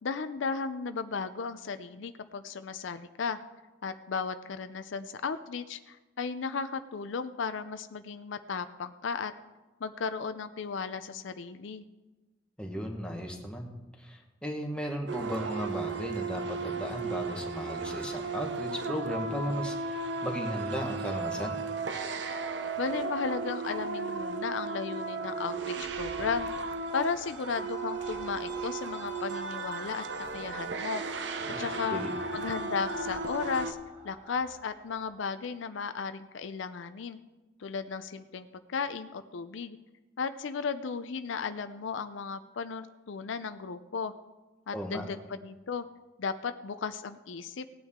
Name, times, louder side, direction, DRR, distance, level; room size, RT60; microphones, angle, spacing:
voice 1, 0.0-3.4 3.8-9.3 9.8-11.8 22.8-26.7 26.9-32.0 32.3-33.8 34.0-37.2 37.6-39.8 40.2-44.1 44.7-45.8 46.2-47.7, left 5 dB, 70° left, 11 dB, 0.5 m, -35 dB
voice 2, 12.6-13.7 14.0-19.8 20.2-21.6 31.5-31.6 31.9-32.1 44.7-45.0, equal, 5° left, 1 dB, 1.3 m, -35 dB
sound 1, 15.1-33.7, right 3 dB, 60° right, 0.7 m, -35 dB
sound 2, 25.4-35.4, right 1 dB, 30° right, 1.8 m, -51 dB
17.5 x 9.1 x 3.6 m, 1.2 s
head